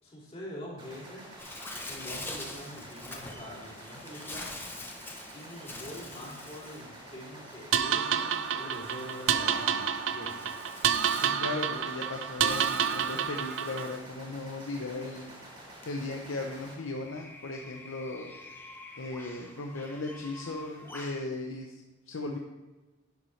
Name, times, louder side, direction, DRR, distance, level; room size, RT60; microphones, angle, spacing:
voice 1, 0.0-1.3 1.8-4.5 5.3-10.5, equal, 30° left, -5 dB, 3.1 m, -44 dB
sound 1, 0.8-16.7, right 1 dB, 25° right, 2.3 m, -49 dB
Bird, 1.4-21.3, left 2 dB, 10° left, 0.9 m, -46 dB
sound 2, 7.7-14.0, right 8 dB, 75° right, 0.5 m, -29 dB
voice 2, 11.2-15.3 15.9-18.3 19.0-21.7 22.1-22.4, left 2 dB, 85° left, 2 dB, 0.8 m, -37 dB
10.5 x 7.6 x 3.3 m, 1.2 s
head